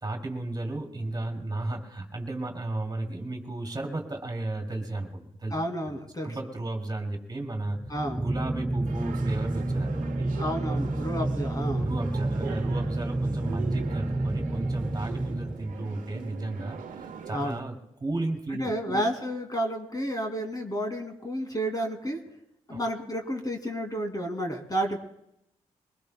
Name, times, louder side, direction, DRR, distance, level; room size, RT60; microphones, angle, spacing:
voice 1, 0.0-5.5 5.9-6.0 6.2-7.8 8.1-10.3 11.8-19.0 22.7-22.8, right 2 dB, 30° right, 3 dB, 2.7 m, -34 dB
voice 2, 5.5-6.4 7.9-8.2 10.4-11.9 17.3-17.6 18.5-22.2 22.7-25.0, equal, 25° left, 4 dB, 2.4 m, -31 dB
sound 1, 7.7-16.1, right 2 dB, 5° right, 0.7 m, -30 dB
sound 2, 8.9-17.6, right 6 dB, 70° right, 1.1 m, -42 dB
23.0 x 20.0 x 2.2 m, 0.80 s
hypercardioid pair, 45°, 14 cm